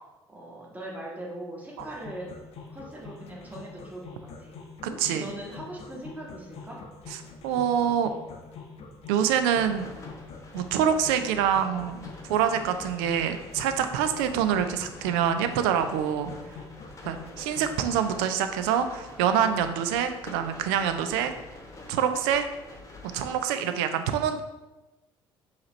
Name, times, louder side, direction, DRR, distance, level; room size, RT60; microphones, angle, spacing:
voice 1, 0.3-2.3 2.7-4.6 4.8-6.8, right 1 dB, 10° right, -3 dB, 1.2 m, -40 dB
sound 1, 1.8-17.8, left 5 dB, 55° left, 0.6 m, -45 dB
voice 2, 4.8-5.3 7.1-7.2 7.4-8.1 9.1-9.9 10.5-12.0 12.3-16.3 17.0-21.3 21.9-22.4 23.1-24.4, right 8 dB, 75° right, 9 dB, 0.4 m, -25 dB
sound 2, 9.5-23.4, left 2 dB, 25° left, 0.9 m, -47 dB
4.7 x 3.0 x 3.0 m, 1.1 s
hypercardioid pair, 55°, 13 cm